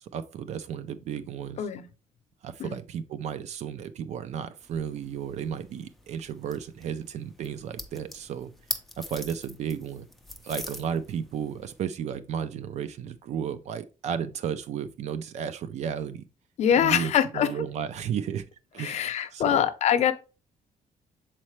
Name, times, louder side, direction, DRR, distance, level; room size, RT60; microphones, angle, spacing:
voice 1, 0.0-1.7 2.4-8.5 9.0-10.1 10.4-16.3 16.8-18.4 18.7-19.6, right 8 dB, 55° right, 0.4 m, -33 dB
sound 1, 4.6-11.8, left 1 dB, ahead, 0.6 m, -42 dB
voice 2, 16.6-17.5 18.8-20.1, left 9 dB, 55° left, 0.6 m, -24 dB
7.2 x 4.3 x 3.1 m
cardioid pair, 165°, 14 cm